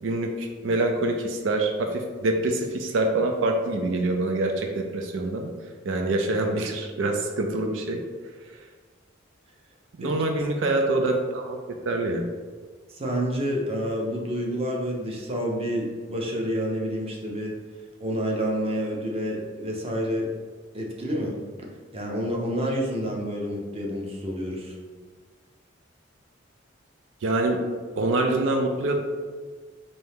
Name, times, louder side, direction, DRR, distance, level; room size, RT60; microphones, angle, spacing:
voice 1, 0.0-5.5 5.9-8.0 10.0-11.6 11.9-12.2 27.2-27.6 28.0-28.9, right 2 dB, 90° right, 3 dB, 0.5 m, -25 dB
voice 2, 12.9-17.5 18.0-20.3 20.7-21.3 21.9-24.8, equal, 30° right, -1 dB, 0.7 m, -28 dB
4.4 x 2.7 x 3.4 m, 1.5 s
head